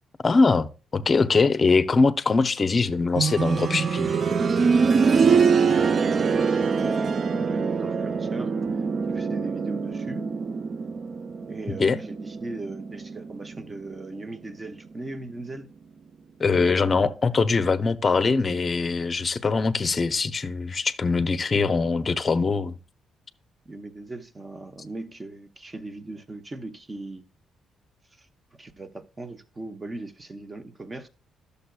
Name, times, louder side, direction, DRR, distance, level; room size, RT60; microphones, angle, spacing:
voice 1, 0.2-4.1 11.8-12.0 16.4-22.8, left 4 dB, 35° left, 0.6 m, -22 dB
sound 1, 3.2-13.9 15.3-15.4, right 5 dB, 45° right, 0.4 m, -24 dB
voice 2, 5.6-8.5 9.1-10.3 11.5-15.7 23.7-27.2 28.2-28.3 28.6-31.1, right 2 dB, 25° right, 0.9 m, -38 dB
11.5 x 6.8 x 2.3 m
cardioid pair, 90°, 0 cm